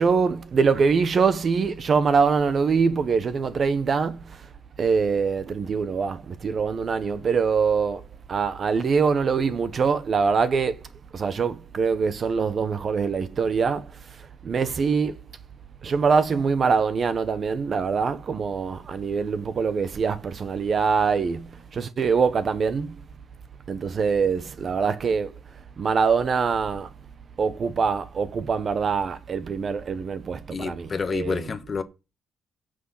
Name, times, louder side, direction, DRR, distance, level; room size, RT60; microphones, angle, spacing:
voice 1, 0.0-4.5 4.8-10.8 11.1-15.2 15.8-23.0 23.7-25.3 25.8-26.9 27.4-31.4, right 5 dB, 40° right, 1.0 m, -24 dB
voice 2, 30.5-31.8, left 5 dB, 30° left, 1.2 m, -29 dB
16.0 x 6.5 x 5.6 m
cardioid pair, 145°, 0 cm